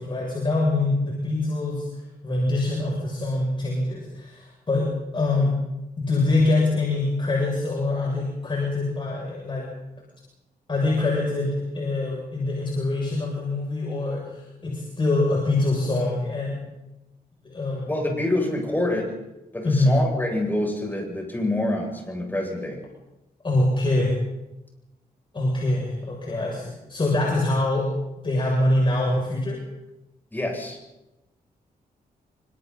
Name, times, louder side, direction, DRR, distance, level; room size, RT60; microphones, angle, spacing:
voice 1, 0.0-5.6 6.0-9.7 10.7-16.6 17.4-18.0 19.6-20.0 23.4-24.1 25.3-27.9 28.2-29.6, left 2 dB, 30° left, -3 dB, 7.5 m, -24 dB
voice 2, 17.9-19.1 19.5-22.8 30.3-30.8, left 1 dB, 10° left, 0 dB, 7.7 m, -26 dB
29.0 x 26.5 x 4.3 m, 0.96 s
wide cardioid pair, 120°, 16 cm